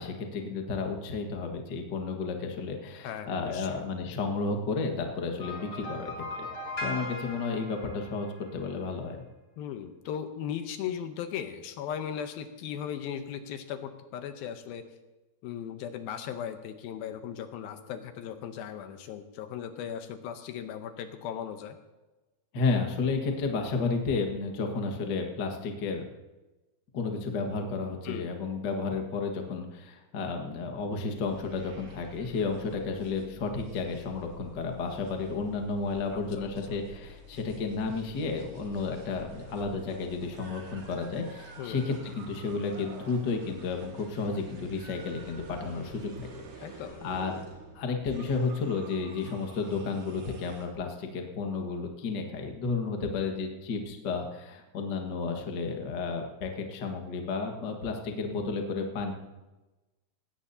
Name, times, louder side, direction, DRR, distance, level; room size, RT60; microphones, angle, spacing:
voice 1, 0.0-6.1 6.4-6.5 6.8-9.2 22.5-26.0 26.9-47.4 47.7-59.1, left 4 dB, 55° left, 3 dB, 1.1 m, -32 dB
voice 2, 3.0-3.8 9.6-14.9 15.4-21.8 28.1-28.3 36.1-36.8 41.6-41.8 46.6-47.3, left 9 dB, 80° left, 7 dB, 2.5 m, -38 dB
sound 1, 5.4-8.7, left 2 dB, 20° left, 6.3 m, -39 dB
sound 2, 31.2-50.7, right 2 dB, 55° right, 3.1 m, -49 dB
19.0 x 16.5 x 2.8 m, 1.1 s
omnidirectional pair, 4.6 m